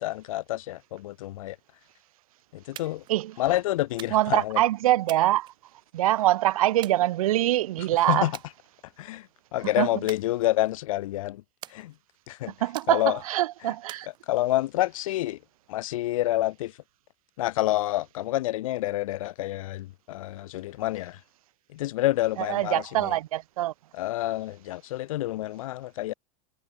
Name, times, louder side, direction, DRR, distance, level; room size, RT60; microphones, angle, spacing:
voice 1, 0.0-1.6 2.5-3.0 3.4-4.6 8.1-8.3 9.0-11.4 11.7-11.9 12.3-12.5 12.9-13.2 14.3-15.4 15.7-16.8 17.4-21.2 21.7-23.2 23.9-26.1, left 15 dB, 75° left, 3.7 m, -28 dB
sound 1, 2.8-3.2 4.0-4.5 5.1-6.0 6.8-7.6 8.3-8.5 8.9-9.3 10.1-10.9 11.6-12.2 12.7-13.3 13.9-14.7, right 14 dB, 25° right, 5.5 m, -46 dB
voice 2, 4.1-5.5 5.9-8.3 9.8-9.9 12.6-14.1 22.5-23.7, right 14 dB, 85° right, 6.9 m, -24 dB
supercardioid pair, 180°, 18 cm